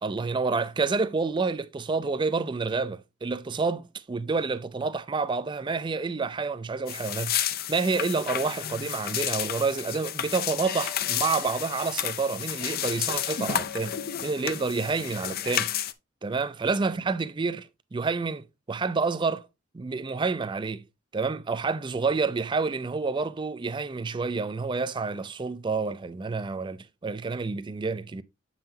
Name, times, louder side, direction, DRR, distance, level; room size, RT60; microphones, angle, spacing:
voice 1, 0.0-7.4 7.7-15.7 16.2-19.5 19.7-20.8 21.1-28.2, right 4 dB, 25° right, 0.4 m, -29 dB
sound 1, 6.9-15.9, left 10 dB, 50° left, 0.5 m, -31 dB
7.8 x 5.6 x 2.7 m
head